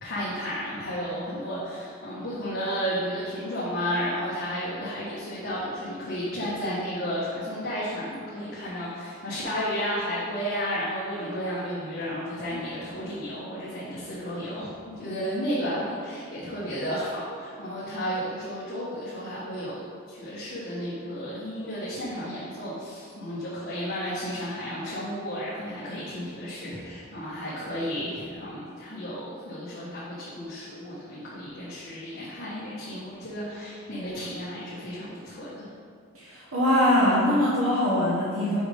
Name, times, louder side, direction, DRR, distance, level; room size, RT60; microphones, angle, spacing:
voice 1, 0.0-35.7, equal, 50° left, -9 dB, 1.5 m, -33 dB
voice 2, 36.1-38.6, left 1 dB, 85° right, -7 dB, 1.2 m, -22 dB
6.1 x 5.1 x 5.2 m, 2.4 s
head